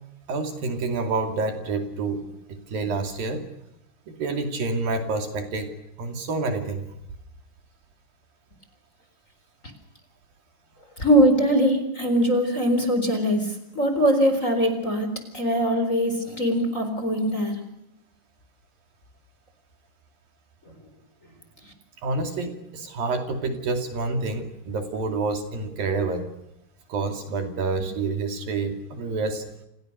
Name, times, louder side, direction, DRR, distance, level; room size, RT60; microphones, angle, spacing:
voice 1, 0.3-2.2 2.5-3.4 4.1-5.7 6.0-6.8 22.0-26.3 26.9-29.4, right 3 dB, 60° right, 6 dB, 4.2 m, -28 dB
voice 2, 11.0-13.5 13.8-17.6, equal, 20° left, 8 dB, 4.0 m, -21 dB
29.5 x 29.0 x 6.6 m, 0.83 s
omnidirectional pair, 4.9 m